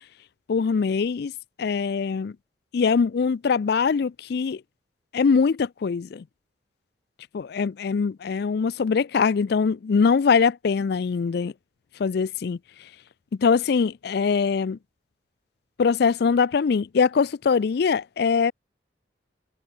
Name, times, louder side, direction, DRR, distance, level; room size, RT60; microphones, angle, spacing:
voice 1, 0.5-1.3 1.6-2.3 2.7-4.6 5.1-6.2 7.3-11.5 12.0-12.6 13.4-14.8 15.8-18.5, left 5 dB, 55° left, 0.4 m, -22 dB
head